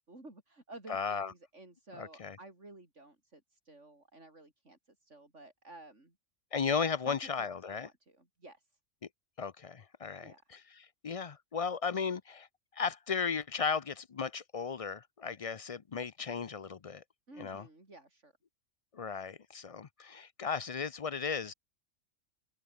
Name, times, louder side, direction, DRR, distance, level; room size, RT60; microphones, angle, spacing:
voice 1, 0.0-6.1 7.1-8.7 10.2-10.6 17.3-18.3, right 2 dB, 80° right, 5.6 m, -53 dB
voice 2, 0.9-1.3 2.0-2.4 6.5-7.9 9.4-12.5 12.7-17.0 17.4-17.7 18.9-21.5, left 5 dB, 40° left, 0.5 m, -35 dB
open air
omnidirectional pair, 1.2 m